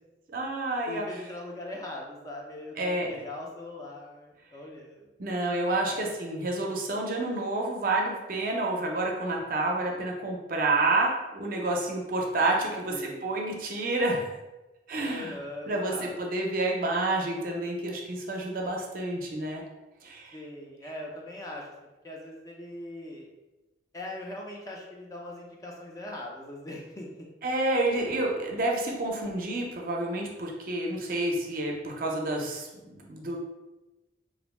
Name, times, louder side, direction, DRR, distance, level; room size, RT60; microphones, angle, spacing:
voice 1, 0.3-1.2 2.8-3.1 5.2-14.3 14.9-15.4 15.7-19.6 20.0-20.4 27.4-33.4, right 2 dB, 50° right, 0 dB, 0.5 m, -29 dB
voice 2, 0.9-5.1 5.9-6.1 12.9-13.4 15.0-16.1 20.3-21.7 22.0-23.3 23.9-27.3, left 1 dB, 20° left, -2 dB, 0.3 m, -41 dB
2.5 x 2.1 x 3.1 m, 1.1 s
head